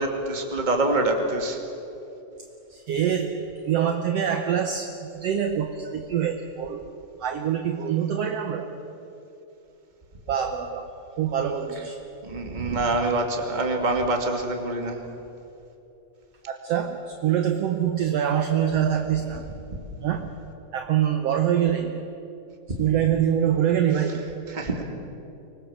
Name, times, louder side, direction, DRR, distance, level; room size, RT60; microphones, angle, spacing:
voice 1, 0.0-1.6 12.2-15.0 19.7-19.8 22.7-22.8 24.5-24.8, right 2 dB, 15° right, 3 dB, 1.6 m, -25 dB
voice 2, 2.7-6.8 7.2-8.7 10.3-12.0 16.5-19.4 20.0-20.3 20.7-22.1 22.8-24.3, right 9 dB, 70° right, 6 dB, 1.5 m, -25 dB
25.0 x 20.5 x 7.2 m, 2.9 s
omnidirectional pair, 4.0 m